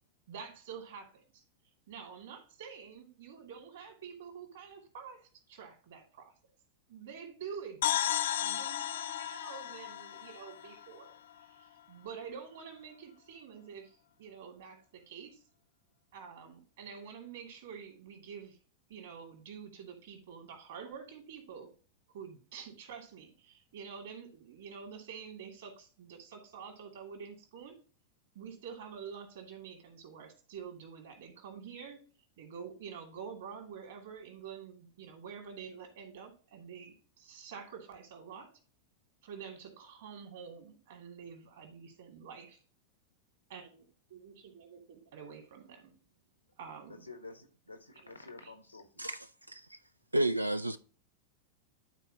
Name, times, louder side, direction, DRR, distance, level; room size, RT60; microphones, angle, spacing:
voice 1, 0.3-1.4 1.9-6.3 6.9-8.0 8.4-11.1 11.4-15.4 16.1-18.6 18.9-21.7 22.1-27.7 28.3-32.0 32.4-38.5 39.2-42.6 43.5-45.9 46.6-47.1 47.9-48.1 48.4-48.5, right 6 dB, 60° right, 2.5 m, -48 dB
sound 1, 7.8-11.4, left 12 dB, 60° left, 0.4 m, -34 dB
voice 2, 46.9-49.1, left 3 dB, 85° left, 1.3 m, -50 dB
voice 3, 49.0-49.8 50.1-50.8, right 1 dB, 85° right, 0.3 m, -32 dB
12.0 x 4.4 x 2.8 m
figure-of-eight pair, 90°, 0 cm